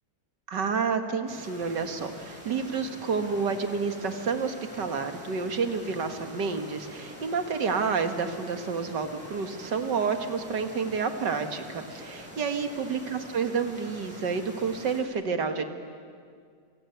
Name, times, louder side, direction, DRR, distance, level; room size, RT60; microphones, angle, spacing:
voice 1, 0.5-15.7, right 5 dB, 80° right, 7 dB, 2.4 m, -29 dB
sound 1, 1.3-15.0, equal, 5° right, 7.6 m, -45 dB
27.5 x 23.0 x 9.4 m, 2.1 s
omnidirectional pair, 1.9 m